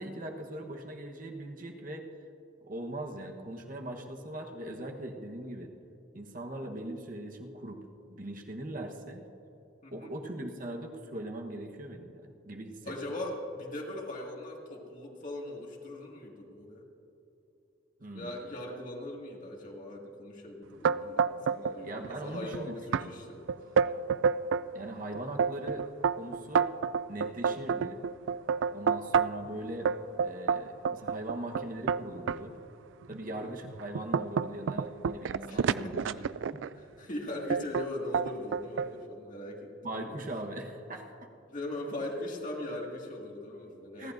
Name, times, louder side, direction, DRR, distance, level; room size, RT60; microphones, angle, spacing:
voice 1, 0.0-2.1 2.6-5.7 6.1-7.8 8.1-9.2 9.9-12.9 18.0-18.4 21.8-23.2 24.7-26.7 27.1-28.0 28.7-29.9 30.2-32.5 33.1-36.2 36.5-36.7 39.8-41.1 44.0-44.1, right 1 dB, 45° right, 2 dB, 1.1 m, -40 dB
voice 2, 9.8-10.2 12.9-16.8 18.1-23.5 24.7-24.9 33.2-33.5 35.5-36.3 36.8-40.1 41.5-44.1, left 1 dB, 45° left, -1 dB, 2.1 m, -40 dB
sound 1, 20.8-21.8 22.0-22.6 22.9-23.1 23.5-24.7 25.1-29.5 29.9-32.4 33.0-33.2 33.6-36.7 37.5-37.9 38.1-38.9, right 6 dB, 75° right, 0.3 m, -28 dB
30.0 x 11.5 x 2.6 m, 2.9 s
head